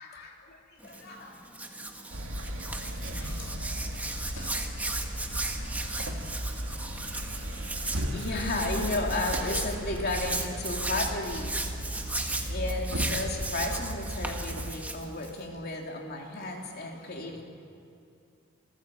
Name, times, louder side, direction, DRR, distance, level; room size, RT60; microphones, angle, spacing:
voice 1, 0.0-1.3 1.8-1.9 8.0-11.5 12.5-17.4, left 2 dB, 50° left, 1 dB, 3.1 m, -34 dB
sound 1, 0.7-16.8, left 2 dB, 90° left, 7.2 m, -57 dB
Hands, 0.8-15.5, right 2 dB, 10° right, 1.5 m, -37 dB
sound 2, 2.1-14.7, equal, 80° right, 2.0 m, -35 dB
27.0 x 14.5 x 7.7 m, 2.5 s
head